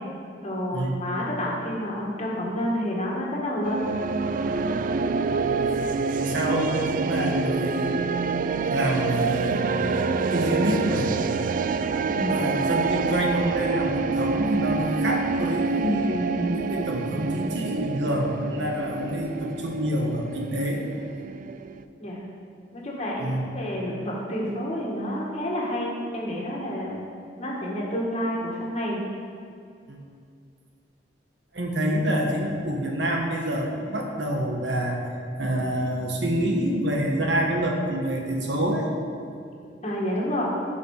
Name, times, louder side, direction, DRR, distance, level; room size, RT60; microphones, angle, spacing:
voice 1, 0.4-3.9 12.1-12.4 22.0-22.3 22.7-27.0 27.4-29.0 39.8-40.4, equal, 35° left, -4 dB, 1.8 m, -29 dB
sound 1, 3.6-21.8, right 4 dB, 50° right, 0.3 m, -27 dB
voice 2, 5.7-8.0 8.7-9.7 10.3-11.1 12.3-20.8 23.2-23.4 29.9-30.0 31.5-35.0 35.4-38.9, right 1 dB, 75° right, 0 dB, 1.5 m, -27 dB
14.5 x 5.8 x 5.0 m, 2.4 s
head